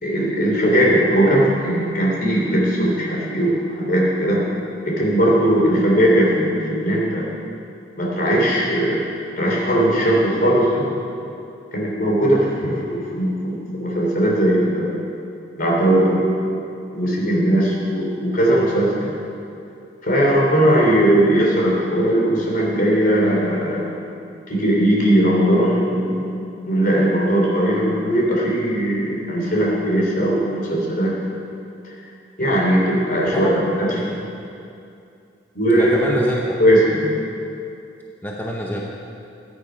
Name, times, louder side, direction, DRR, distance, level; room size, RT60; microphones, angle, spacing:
voice 1, 0.0-4.4 4.9-7.3 8.0-9.0 9.4-10.9 11.7-15.0 15.6-16.3 16.9-19.1 20.0-23.9 24.5-26.2 26.7-31.2 32.4-34.1 35.5-36.1 36.6-37.1, right 1 dB, 50° left, -3 dB, 3.1 m, -19 dB
voice 2, 33.3-34.2 35.8-36.5 38.2-38.8, equal, 10° left, -2 dB, 0.8 m, -27 dB
14.5 x 9.8 x 5.1 m, 2.6 s
head